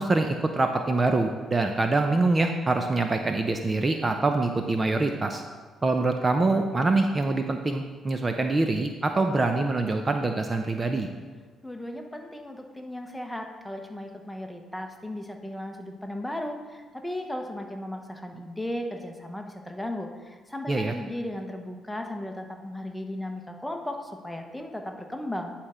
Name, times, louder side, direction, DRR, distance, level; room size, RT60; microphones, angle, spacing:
voice 1, 0.0-5.4 5.8-11.1 20.7-20.9, right 2 dB, 30° right, 5 dB, 0.5 m, -25 dB
voice 2, 11.6-25.5, left 1 dB, 5° left, 3 dB, 0.9 m, -36 dB
9.9 x 4.3 x 4.9 m, 1.4 s
cardioid pair, 90°, 0 cm